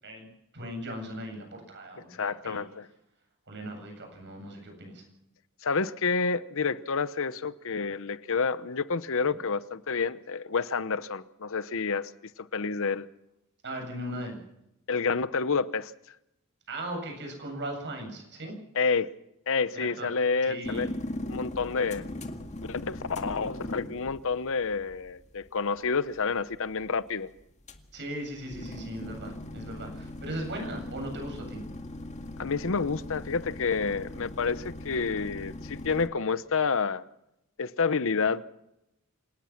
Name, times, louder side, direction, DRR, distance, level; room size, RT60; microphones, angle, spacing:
voice 1, 0.0-2.6 3.5-5.0 13.6-14.4 16.7-18.5 19.7-20.1 20.4-20.9 27.9-31.6, right 1 dB, 55° right, 7.9 m, -38 dB
voice 2, 2.1-2.9 5.6-12.1 12.5-13.1 14.9-15.9 18.7-19.1 19.5-20.9 21.3-22.0 22.7-27.3 32.4-37.0 37.6-38.4, left 5 dB, 65° left, 0.9 m, -29 dB
sound 1, 20.6-36.1, left 1 dB, 30° left, 2.1 m, -40 dB
26.5 x 19.0 x 6.0 m
head